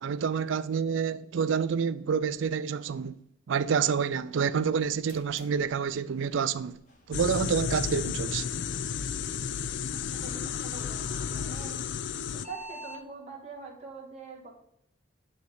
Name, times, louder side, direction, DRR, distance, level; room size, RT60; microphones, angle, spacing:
voice 1, 0.0-3.2 3.5-6.8 7.1-8.4, right 6 dB, 80° right, 0.4 m, -28 dB
sound 1, 4.8-13.0, equal, 40° left, 1.2 m, -52 dB
sound 2, 7.1-12.5, left 7 dB, 65° left, 0.4 m, -33 dB
voice 2, 9.9-11.8 12.3-14.5, right 4 dB, 35° right, 1.5 m, -44 dB
9.2 x 3.2 x 4.8 m
head